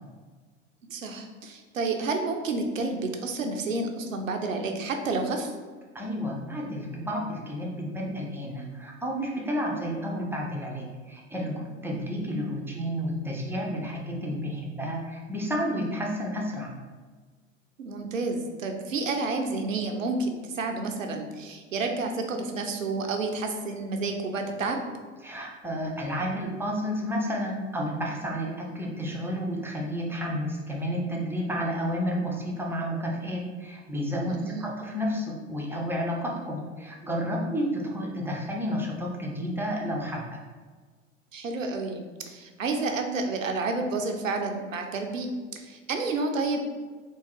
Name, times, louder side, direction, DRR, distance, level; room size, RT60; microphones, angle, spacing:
voice 1, 0.9-5.5 17.8-24.8 34.2-34.7 41.3-45.3 45.5-46.6, right 3 dB, 85° right, 4 dB, 0.6 m, -30 dB
voice 2, 5.9-16.7 25.2-40.4, equal, 5° right, -2 dB, 0.6 m, -31 dB
3.6 x 2.8 x 3.0 m, 1.4 s
figure-of-eight pair, 80°, 38 cm